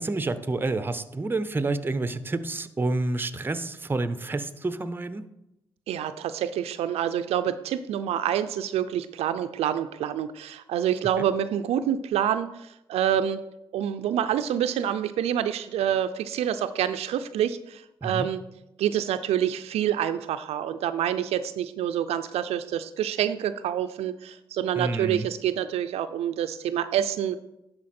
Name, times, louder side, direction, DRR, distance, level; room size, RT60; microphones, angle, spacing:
voice 1, 0.0-5.2 11.2-11.3 18.0-18.3 24.8-25.3, right 2 dB, 20° right, 12 dB, 0.6 m, -29 dB
voice 2, 5.9-13.4 13.7-18.4 18.8-27.4, right 10 dB, 80° right, 10 dB, 0.4 m, -27 dB
11.0 x 4.5 x 4.3 m, 0.86 s
cardioid pair, 70°, 10 cm